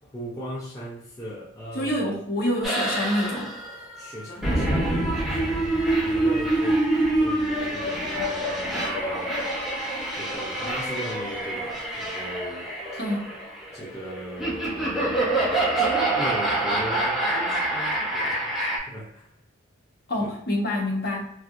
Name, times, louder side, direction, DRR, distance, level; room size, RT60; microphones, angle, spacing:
voice 1, 0.0-1.9 4.0-5.6 6.0-6.9 7.2-9.4 10.1-13.0 13.7-15.2 15.5-19.3 20.2-20.3, equal, 15° left, -5 dB, 0.4 m, -38 dB
voice 2, 1.7-3.6 13.0-13.3 20.1-21.2, left 1 dB, 50° left, -3 dB, 0.9 m, -27 dB
sound 1, 2.6-18.8, right 1 dB, 5° right, 1.1 m, -26 dB
3.3 x 2.7 x 2.4 m, 0.74 s
head